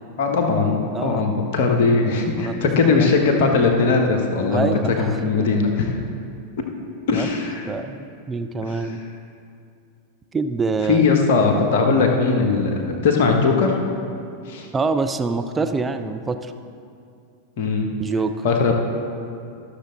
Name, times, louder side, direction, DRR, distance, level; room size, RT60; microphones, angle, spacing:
voice 1, 0.2-4.7 5.0-6.0 7.1-7.7 8.7-8.9 10.9-13.7 14.5-14.7 17.6-17.9 18.4-18.7, left 4 dB, 50° left, 2 dB, 1.1 m, -19 dB
voice 2, 2.3-3.1 4.5-5.5 7.1-7.3 7.7-9.0 10.3-11.0 14.7-16.5 18.0-18.3, right 4 dB, 15° right, 7 dB, 0.5 m, -25 dB
13.0 x 6.5 x 3.9 m, 2.5 s
figure-of-eight pair, 90°, 0 cm